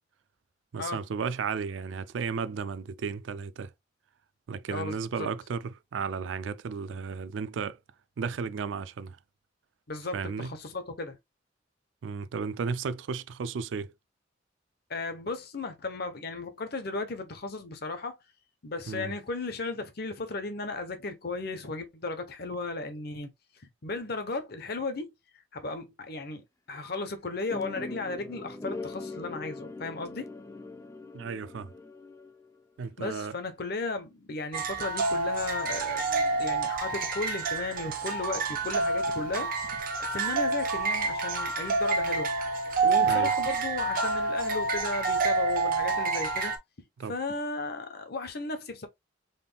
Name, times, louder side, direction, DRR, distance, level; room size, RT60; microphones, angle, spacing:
voice 1, 0.7-3.7 4.5-7.8 8.2-9.2 10.1-10.5 12.0-13.9 18.9-19.1 31.1-31.7 32.8-33.4 43.1-43.3 47.0-47.1, right 5 dB, 90° right, 0.4 m, -34 dB
voice 2, 4.7-5.3 9.9-11.2 14.9-18.1 18.6-23.3 23.8-25.1 25.5-30.3 33.0-39.8 40.1-42.3 42.8-46.5 47.1-48.9, left 3 dB, 60° left, 0.9 m, -35 dB
sound 1, 27.5-32.6, left 3 dB, 15° left, 0.5 m, -41 dB
sound 2, 34.5-46.6, right 3 dB, 50° right, 0.8 m, -28 dB
4.1 x 3.5 x 2.2 m
head